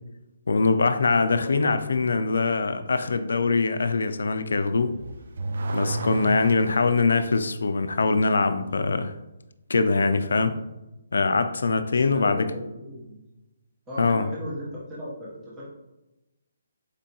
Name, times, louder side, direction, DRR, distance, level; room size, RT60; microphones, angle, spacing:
voice 1, 0.5-5.0 5.7-9.1 9.7-10.6 11.1-12.5 14.0-14.3, left 4 dB, 75° left, 10 dB, 0.3 m, -23 dB
voice 2, 1.4-1.8 11.9-13.2 13.9-15.6, left 1 dB, 10° right, -8 dB, 0.6 m, -37 dB
Car / Accelerating revving vroom, 4.8-7.1, right 2 dB, 50° right, 0.3 m, -32 dB
4.3 x 2.7 x 2.7 m, 0.97 s
hypercardioid pair, 180°, 0 cm